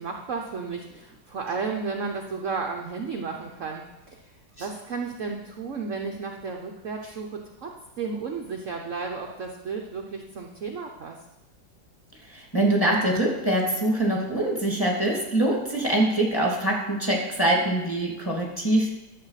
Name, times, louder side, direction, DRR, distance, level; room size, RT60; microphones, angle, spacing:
voice 1, 0.0-4.2 4.6-11.2, right 4 dB, 50° right, 2 dB, 1.0 m, -33 dB
voice 2, 12.3-18.9, right 1 dB, 10° left, -2 dB, 2.2 m, -24 dB
11.5 x 7.8 x 5.8 m, 0.97 s
omnidirectional pair, 2.1 m